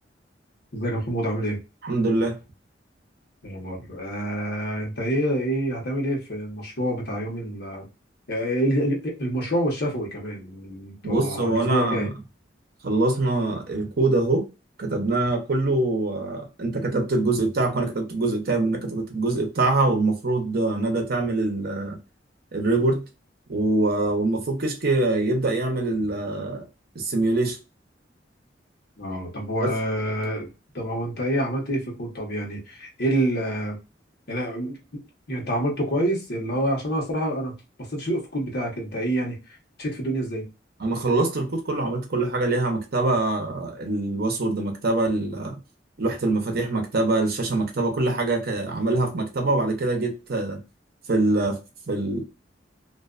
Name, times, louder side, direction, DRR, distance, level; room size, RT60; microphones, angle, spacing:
voice 1, 0.7-1.6 3.4-7.8 8.3-12.1 29.0-30.5 30.7-33.8 34.3-35.0 35.3-37.6 37.9-40.5, right 1 dB, 60° left, 1.0 m, -27 dB
voice 2, 1.8-2.4 11.0-12.1 12.8-14.5 14.8-22.0 22.5-23.0 23.5-26.7 26.9-27.6 29.6-29.7 40.8-45.6 46.0-50.6 51.1-52.2, right 2 dB, 55° right, 0.7 m, -24 dB
2.5 x 2.2 x 2.4 m
head